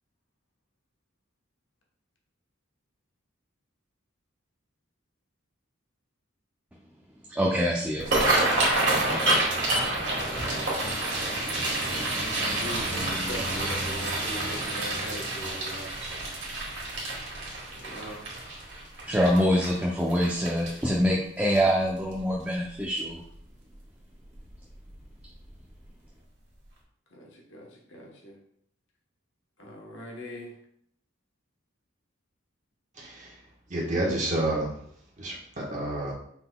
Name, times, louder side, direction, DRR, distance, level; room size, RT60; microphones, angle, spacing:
voice 1, 7.3-8.1 19.1-23.2, equal, 10° right, -2 dB, 0.4 m, -25 dB
sound 1, 7.9-21.1 21.5-21.8 22.1-22.6 23.0-23.1 24.4-24.5 24.9-25.0 25.5-25.6, right 2 dB, 65° right, 1.5 m, -28 dB
voice 2, 9.9-10.8 11.2-11.7 12.2-15.9 17.7-18.2 27.1-28.4 29.6-30.5, equal, 80° left, -1 dB, 1.1 m, -41 dB
voice 3, 33.0-33.3 33.7-34.7 35.2-36.1, right 1 dB, 40° right, -3 dB, 1.2 m, -29 dB
5.5 x 3.9 x 2.2 m, 0.69 s
head